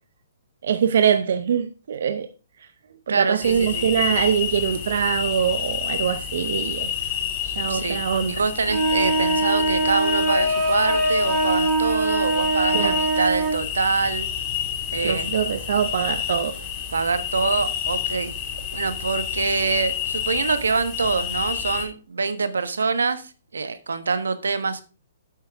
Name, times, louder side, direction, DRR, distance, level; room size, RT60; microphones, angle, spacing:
voice 1, 0.6-2.3 2.6-2.7 3.1-7.2 7.4-8.4 12.7-13.0 15.0-16.7, right 8 dB, 65° right, 0.8 m, -23 dB
voice 2, 3.1-3.9 7.6-8.0 8.3-14.3 14.9-15.3 16.9-18.3 18.7-24.8, right 4 dB, 90° right, 1.3 m, -25 dB
sound 1, 3.4-21.9, left 9 dB, 25° left, 3.0 m, -29 dB
sound 2, 8.6-13.6, right 2 dB, 10° right, 3.6 m, -22 dB
9.6 x 8.3 x 3.6 m
hypercardioid pair, 145°, 0 cm